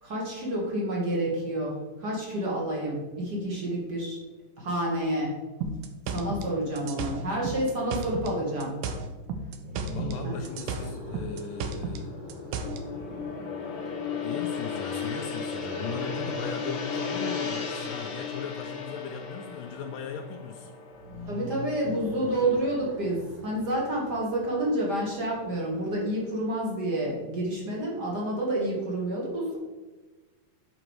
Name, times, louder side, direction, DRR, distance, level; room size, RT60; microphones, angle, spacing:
voice 1, 0.0-4.2 4.6-5.3 6.1-8.8 10.2-10.3 21.3-29.6, right 1 dB, 45° right, -3 dB, 1.4 m, -29 dB
sound 1, 5.6-8.3 8.6-10.2 10.4-12.8, right 4 dB, 80° right, 2.2 m, -33 dB
sound 2, 9.5-14.7 20.9-26.6, right 1 dB, 30° right, 1.2 m, -43 dB
voice 2, 9.9-12.1 14.2-20.7, left 6 dB, 80° left, 4 dB, 2.1 m, -38 dB
Gong, 10.6-22.7 23.0-23.3, left 5 dB, 60° left, 1.4 m, -35 dB
7.9 x 5.1 x 4.7 m, 1.2 s
omnidirectional pair, 4.1 m